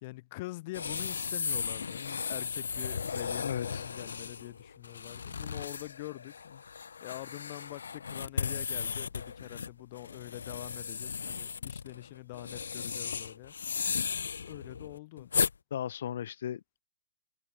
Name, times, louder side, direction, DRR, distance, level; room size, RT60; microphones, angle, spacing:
voice 1, 0.0-6.8 7.0-13.5 14.4-15.3, left 20 dB, 45° left, 3.1 m, -45 dB
sound 1, 0.7-15.5, left 6 dB, 90° left, 2.5 m, -36 dB
voice 2, 3.4-3.8 15.2-15.3 15.7-16.8, left 10 dB, 65° left, 2.4 m, -37 dB
hypercardioid pair, 140°, 0 cm